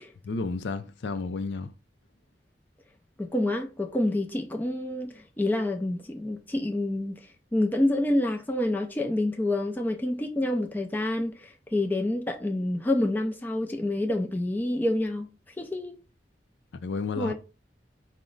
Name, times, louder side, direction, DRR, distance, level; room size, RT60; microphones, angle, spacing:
voice 1, 0.2-1.7 16.8-17.3, left 4 dB, 75° left, 0.4 m, -31 dB
voice 2, 3.2-7.2 7.5-11.4 11.7-15.3 15.6-16.0 17.2-17.3, left 1 dB, 10° left, 0.3 m, -27 dB
4.8 x 2.1 x 3.8 m
head